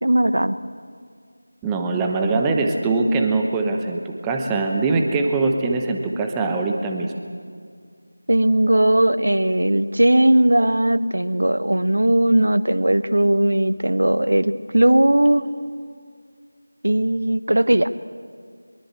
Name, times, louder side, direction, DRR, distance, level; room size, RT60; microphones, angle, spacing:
voice 1, 0.0-0.5 8.3-15.4 16.8-17.9, right 1 dB, 60° right, 14 dB, 1.1 m, -18 dB
voice 2, 1.6-7.1, right 3 dB, 5° right, 2 dB, 0.9 m, -22 dB
23.0 x 22.5 x 8.2 m, 2.1 s
figure-of-eight pair, 170°, 0 cm